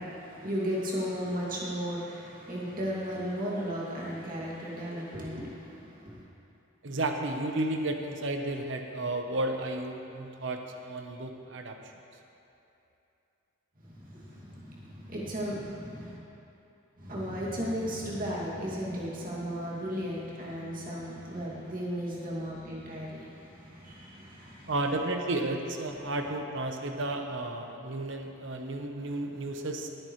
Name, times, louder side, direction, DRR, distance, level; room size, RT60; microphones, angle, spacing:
voice 1, 0.0-6.3 13.8-16.2 17.0-24.7 25.9-26.0, equal, 45° right, -6 dB, 2.5 m, -35 dB
voice 2, 6.8-11.9 24.7-29.9, right 2 dB, 60° right, 4 dB, 1.0 m, -33 dB
19.5 x 9.0 x 3.2 m, 2.9 s
head